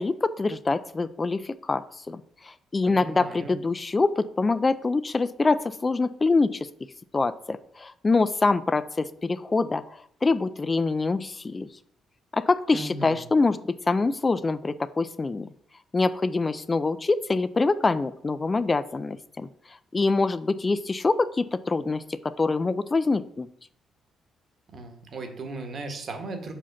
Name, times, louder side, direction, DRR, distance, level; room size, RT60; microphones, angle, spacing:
voice 1, 0.0-1.8 2.1-6.7 7.1-11.7 12.3-15.5 15.9-19.5 19.9-23.5, left 3 dB, 25° left, 14 dB, 0.3 m, -25 dB
voice 2, 2.9-3.5 12.7-13.2 24.7-26.5, right 3 dB, 50° right, 5 dB, 1.3 m, -36 dB
5.0 x 4.2 x 5.8 m, 0.65 s
cardioid pair, 90°, 0 cm